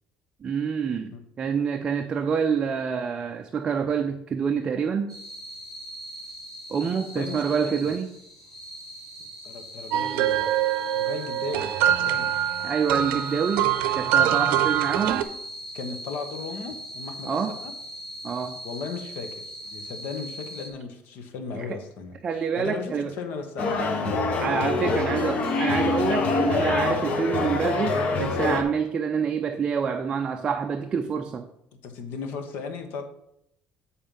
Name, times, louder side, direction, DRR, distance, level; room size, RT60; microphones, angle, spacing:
voice 1, 0.4-5.1 6.7-8.1 12.6-15.2 17.3-17.5 18.2-18.6 21.5-21.8 22.2-23.1 24.4-31.5, right 6 dB, 25° right, 5 dB, 0.4 m, -27 dB
sound 1, 5.1-20.7, equal, 10° left, 1.9 m, -40 dB
voice 2, 7.1-7.9 9.4-12.3 14.6-14.7 15.7-17.7 18.6-22.2 22.6-23.8 24.8-25.0 26.8-27.0 31.8-33.1, left 5 dB, 60° left, 7 dB, 1.1 m, -36 dB
sound 2, 9.9-15.2, right 11 dB, 70° right, 0.6 m, -24 dB
sound 3, 23.6-28.6, left 3 dB, 35° left, 0.9 m, -25 dB
8.8 x 4.3 x 5.4 m, 0.79 s
cardioid pair, 175°, 4 cm